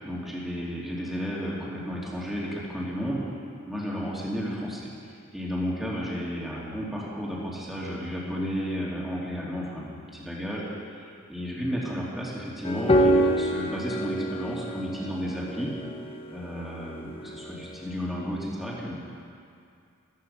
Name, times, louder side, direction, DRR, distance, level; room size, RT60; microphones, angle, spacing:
voice 1, 0.0-3.2 3.7-4.8 5.3-10.6 11.0-15.7 16.3-19.0, equal, ahead, -6 dB, 2.8 m, -32 dB
sound 1, 12.6-17.6, equal, 30° left, 0.9 m, -26 dB
14.0 x 14.0 x 5.7 m, 2.4 s
head